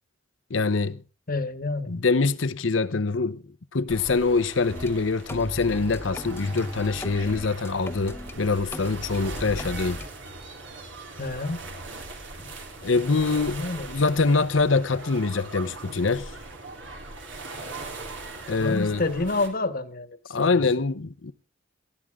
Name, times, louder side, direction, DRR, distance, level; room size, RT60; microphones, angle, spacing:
voice 1, 0.5-1.0 1.9-3.4 3.7-10.0 12.8-16.3 18.5-19.0 20.3-21.3, left 4 dB, 75° left, 0.8 m, -24 dB
voice 2, 1.3-2.0 11.2-11.7 12.4-12.5 13.5-13.9 18.6-20.6, left 3 dB, 50° left, 1.3 m, -29 dB
sound 1, 3.9-19.5, right 2 dB, 70° right, 3.4 m, -40 dB
sound 2, 4.7-4.9 5.3-8.4 8.7-10.1, left 1 dB, 15° left, 0.9 m, -37 dB
19.0 x 13.5 x 3.6 m
head